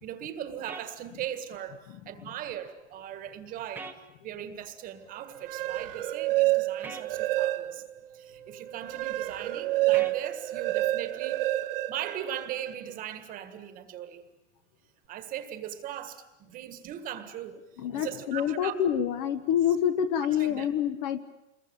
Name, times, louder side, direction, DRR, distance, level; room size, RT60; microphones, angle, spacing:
voice 1, 0.0-3.9 4.2-7.8 8.1-11.4 11.9-14.3 15.1-18.7 20.4-20.7, right 10 dB, 20° right, 10 dB, 1.7 m, -39 dB
sound 1, 0.7-0.9 3.7-4.0 6.8-7.1 9.9-10.2, right 3 dB, 5° right, 1.0 m, -40 dB
sound 2, 5.3-8.0 8.4-12.7, right 17 dB, 45° right, 1.3 m, -29 dB
voice 2, 17.8-21.2, left 9 dB, 35° left, 11 dB, 1.2 m, -27 dB
27.5 x 22.0 x 9.0 m, 0.92 s
supercardioid pair, 170°, 37 cm